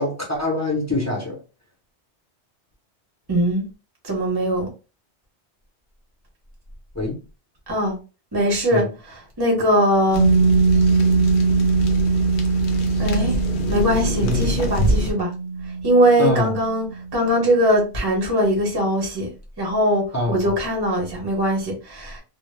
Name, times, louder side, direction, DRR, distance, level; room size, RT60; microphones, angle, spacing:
voice 1, 0.0-1.4 6.9-7.2 8.7-8.9 14.2-14.5 16.2-16.5 20.1-20.6, left 2 dB, 20° left, 0.6 m, -24 dB
voice 2, 3.3-3.6 4.0-4.6 7.7-7.9 8.3-8.8 9.4-10.2 13.0-13.3 13.7-15.3 15.8-16.9 17.1-19.3 19.6-22.2, equal, 25° right, 0.7 m, -20 dB
sound 1, 10.1-15.1, left 1 dB, 60° left, 0.6 m, -26 dB
Piano, 10.2-17.4, right 4 dB, 60° right, 0.8 m, -21 dB
2.1 x 2.0 x 3.1 m
omnidirectional pair, 1.1 m